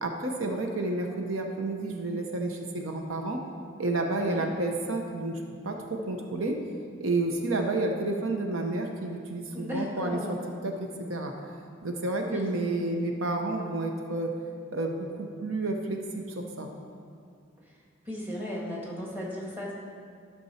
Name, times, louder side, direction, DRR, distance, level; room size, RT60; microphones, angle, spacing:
voice 1, 0.0-3.4 3.8-6.5 7.0-10.4 10.6-10.7 11.1-11.3 11.8-14.3 14.7-16.7, right 2 dB, 75° right, 3 dB, 0.9 m, -30 dB
voice 2, 4.1-4.5 9.5-10.4 12.2-12.5 17.6-17.7 18.0-19.7, left 1 dB, 10° right, -4 dB, 1.7 m, -36 dB
12.5 x 6.1 x 4.3 m, 2.2 s
head